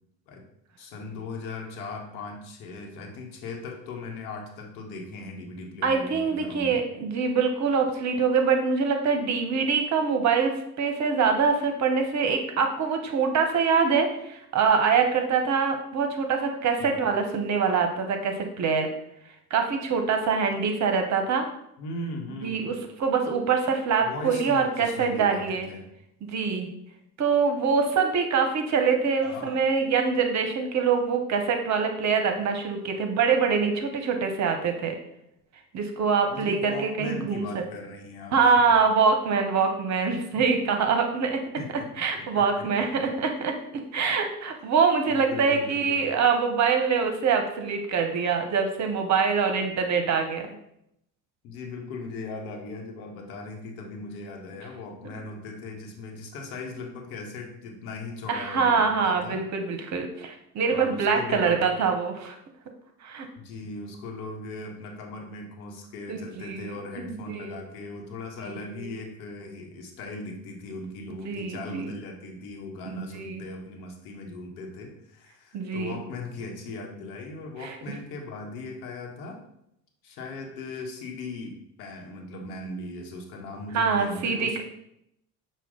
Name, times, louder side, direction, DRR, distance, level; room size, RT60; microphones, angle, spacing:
voice 1, 0.8-6.8 16.8-17.0 21.8-22.8 24.0-25.9 29.2-29.6 36.3-38.7 40.4-40.5 41.6-42.7 43.0-43.1 45.1-46.0 51.4-59.4 60.7-61.7 63.4-79.4 80.0-84.6, left 2 dB, 70° left, 2 dB, 1.0 m, -38 dB
voice 2, 5.8-18.9 19.5-21.5 22.4-25.7 26.2-26.7 27.2-35.0 35.7-37.5 38.3-41.4 42.0-50.5 58.3-62.4 63.0-63.3 66.1-67.6 68.4-68.9 71.1-71.9 72.8-73.4 75.5-75.9 77.6-77.8 83.7-84.6, right 5 dB, 40° right, 5 dB, 0.8 m, -24 dB
5.9 x 2.3 x 3.7 m, 0.77 s
hypercardioid pair, 65°, 45 cm